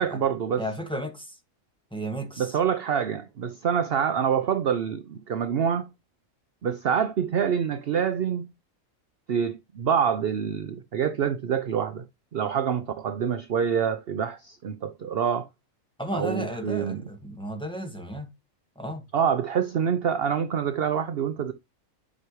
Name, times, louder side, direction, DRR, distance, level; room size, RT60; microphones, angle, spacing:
voice 1, 0.0-0.6 2.4-5.9 6.6-8.5 9.3-12.0 12.3-15.5 16.1-17.0 19.1-21.5, right 7 dB, 55° right, 0.8 m, -26 dB
voice 2, 0.6-1.4 1.9-2.6 16.0-18.3 18.7-19.0, right 1 dB, 5° left, 1.8 m, -33 dB
11.0 x 6.0 x 3.1 m
omnidirectional pair, 1.5 m